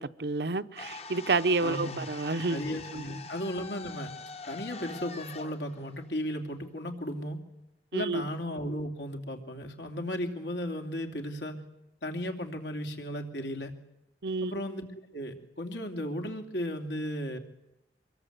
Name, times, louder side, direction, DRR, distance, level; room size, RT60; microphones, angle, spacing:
voice 1, 0.0-2.6 2.9-3.0 7.9-8.2 14.2-14.5, right 3 dB, 65° right, 0.8 m, -29 dB
sound 1, 0.7-6.9, left 4 dB, 35° left, 0.9 m, -44 dB
voice 2, 1.6-2.1 2.5-4.1 4.5-7.4 7.9-11.6 12.0-13.7 14.4-17.4, equal, 85° left, 2.9 m, -35 dB
24.5 x 21.0 x 8.1 m
head